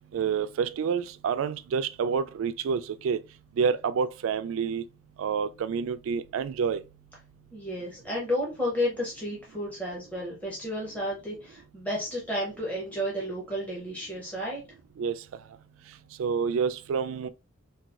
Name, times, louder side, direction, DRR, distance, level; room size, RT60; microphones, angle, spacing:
voice 1, 0.1-3.2 3.6-4.8 5.2-6.8 15.0-15.2 16.2-17.3, right 6 dB, 80° right, 0.3 m, -28 dB
voice 2, 7.5-14.6, equal, 10° left, 0.7 m, -32 dB
3.9 x 2.3 x 2.3 m
head